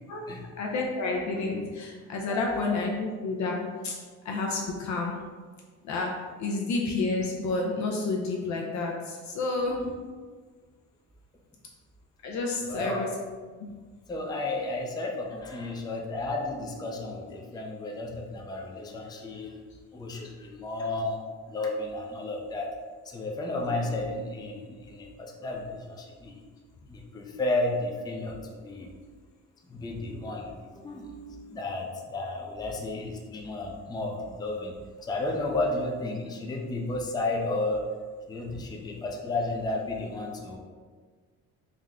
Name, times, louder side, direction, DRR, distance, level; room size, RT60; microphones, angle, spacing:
voice 1, 0.6-5.2 5.8-9.9 12.2-13.1 13.6-13.7 38.5-38.7, left 3 dB, 65° left, -1 dB, 0.6 m, -30 dB
voice 2, 2.3-2.7 9.7-10.1 12.6-13.0 14.1-19.5 19.9-21.2 21.5-22.7 23.0-26.4 26.9-28.9 29.7-34.7 35.0-37.8 38.3-40.6, left 2 dB, 15° left, 0 dB, 0.4 m, -33 dB
3.6 x 2.1 x 3.4 m, 1.5 s
cardioid pair, 90°, 30 cm